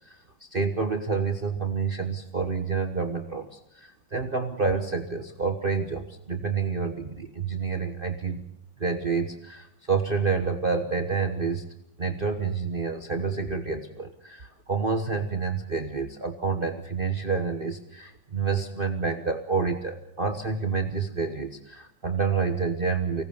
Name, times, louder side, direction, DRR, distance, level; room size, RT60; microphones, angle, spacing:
voice 1, 0.5-8.4 8.8-11.6 12.0-23.2, right 5 dB, 30° right, 6 dB, 1.3 m, -28 dB
24.5 x 18.5 x 7.1 m, 0.74 s
omnidirectional pair, 2.0 m